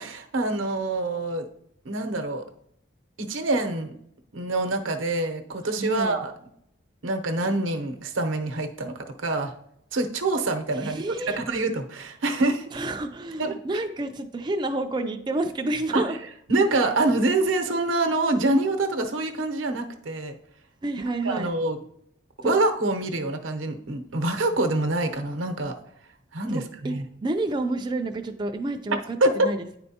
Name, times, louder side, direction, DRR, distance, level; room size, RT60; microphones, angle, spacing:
voice 1, 0.0-1.5 1.8-2.4 3.2-3.9 4.3-6.3 7.0-8.9 9.2-9.5 9.9-12.8 13.4-13.6 15.9-16.0 16.5-20.4 21.2-21.8 22.4-25.7 26.3-27.1 29.2-29.3, right 2 dB, 90° right, 5 dB, 0.8 m, -25 dB
voice 2, 5.8-6.2 10.7-11.4 12.7-16.2 20.8-21.5 22.4-22.5 26.5-26.9 27.2-29.7, right 2 dB, 25° right, 5 dB, 0.3 m, -29 dB
9.5 x 4.4 x 2.8 m, 0.74 s
head